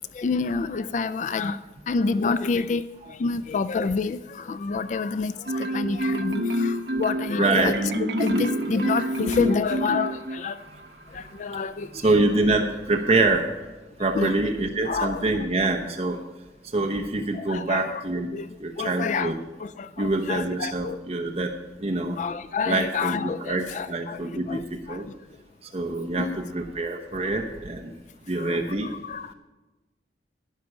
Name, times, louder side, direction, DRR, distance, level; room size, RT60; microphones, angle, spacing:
voice 1, 0.1-1.6 1.9-10.6 11.1-12.1 14.1-14.3 14.8-15.3 17.3-18.0 18.3-19.3 19.6-21.0 22.2-25.1 26.2-26.4 28.3-29.3, left 4 dB, 45° left, 14 dB, 0.3 m, -28 dB
Marimba xylophone, 5.5-10.6, equal, 70° right, 1.0 m, -27 dB
voice 2, 7.4-7.8 11.9-13.5 14.0-16.2 16.7-18.3 18.6-19.4 20.0-22.2 22.7-25.0 25.7-27.9 28.3-28.9, right 2 dB, 35° right, 2 dB, 0.8 m, -25 dB
11.5 x 9.7 x 6.0 m, 1.2 s
head